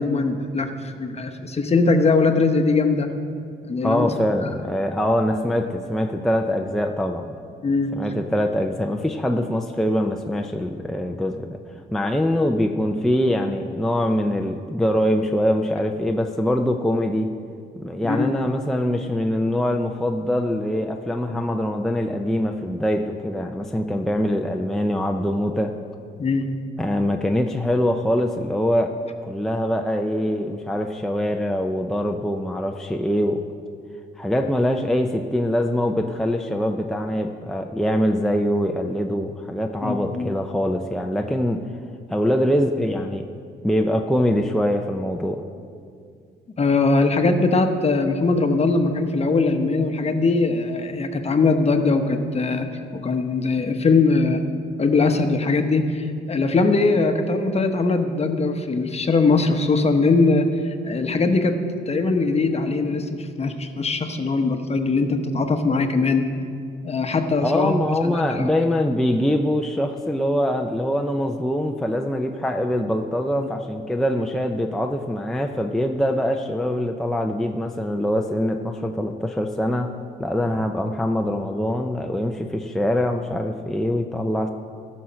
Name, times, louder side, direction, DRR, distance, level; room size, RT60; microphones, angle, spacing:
voice 1, 0.0-3.1 3.7-4.1 4.4-4.5 7.6-7.9 18.0-18.3 26.2-26.5 39.8-40.3 46.6-52.7 52.9-54.4 54.8-61.6 61.9-66.3 66.8-67.8 68.0-68.4 73.4-73.5, left 3 dB, 30° left, 6 dB, 1.0 m, -21 dB
voice 2, 3.8-7.4 7.9-11.6 11.9-17.3 17.8-25.7 26.8-28.9 29.2-33.4 34.2-41.6 42.1-43.3 43.6-45.4 67.4-79.9 80.2-84.5, equal, ahead, 3 dB, 0.5 m, -23 dB
14.0 x 6.4 x 5.7 m, 2.3 s
cardioid pair, 90°, 20 cm